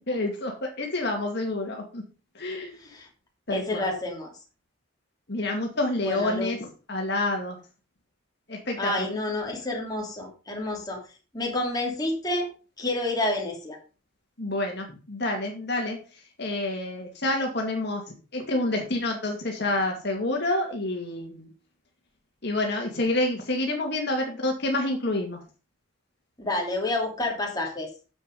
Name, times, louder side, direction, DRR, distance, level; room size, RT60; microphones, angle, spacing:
voice 1, 0.1-2.0 2.3-2.8 3.5-3.9 5.3-7.6 8.5-9.1 14.4-16.0 16.4-21.5 22.4-25.4, left 2 dB, 55° left, 1 dB, 2.2 m, -28 dB
voice 2, 3.5-4.3 6.0-6.5 8.8-11.0 11.3-12.5 12.8-13.8 26.4-27.9, left 2 dB, 20° left, 0 dB, 3.0 m, -29 dB
9.4 x 7.5 x 5.3 m, 0.35 s
head